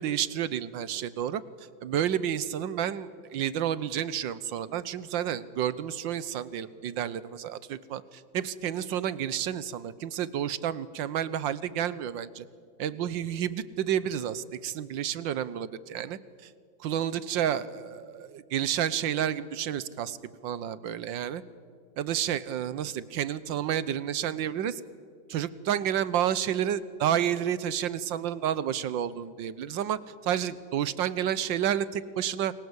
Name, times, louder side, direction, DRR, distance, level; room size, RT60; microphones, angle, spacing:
voice 1, 0.0-1.4 1.8-12.5 12.8-16.5 16.8-20.2 20.4-21.4 22.0-24.8 25.3-32.5, right 10 dB, 85° right, 16 dB, 1.7 m, -30 dB
29.0 x 23.0 x 8.1 m, 2.1 s
omnidirectional pair, 2.0 m